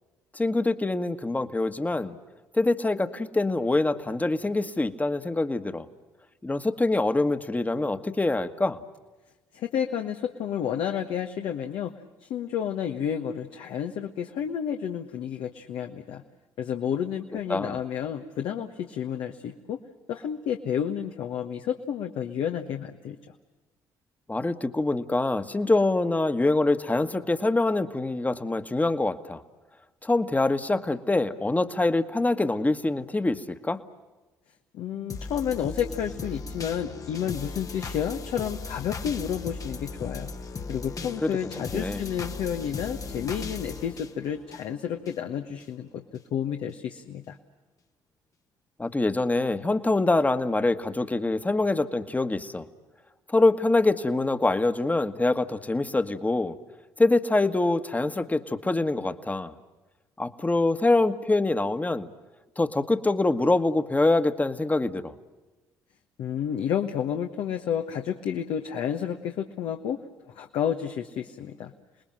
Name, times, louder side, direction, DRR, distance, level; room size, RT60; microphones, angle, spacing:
voice 1, 0.3-2.2 2.5-5.9 6.4-8.8 17.5-17.8 24.3-29.4 30.0-33.8 41.2-41.3 41.7-42.0 48.8-52.6 53.3-56.6 57.0-59.5 60.2-62.1 62.6-65.1, left 2 dB, 15° left, 9 dB, 1.5 m, -25 dB
voice 2, 9.5-11.9 12.2-16.2 16.6-19.8 20.1-23.2 34.7-40.3 40.7-46.0 46.3-47.4 66.2-70.0 70.3-71.7, left 8 dB, 70° left, 4 dB, 1.3 m, -31 dB
sound 1, 35.1-45.1 45.6-45.7, left 4 dB, 40° left, 1.3 m, -37 dB
28.5 x 20.0 x 7.6 m, 1.1 s
hypercardioid pair, 60°, 9 cm